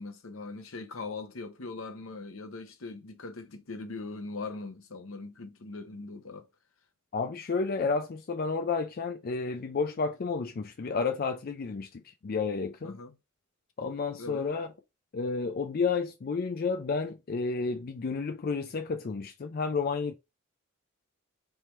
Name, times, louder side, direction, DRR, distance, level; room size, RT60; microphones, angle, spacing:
voice 1, 0.0-6.5 12.8-13.1 14.2-14.5, left 3 dB, 75° left, 0.9 m, -40 dB
voice 2, 7.1-13.0 13.8-14.7 15.1-20.1, left 4 dB, 45° left, 0.4 m, -31 dB
3.4 x 3.2 x 4.4 m
head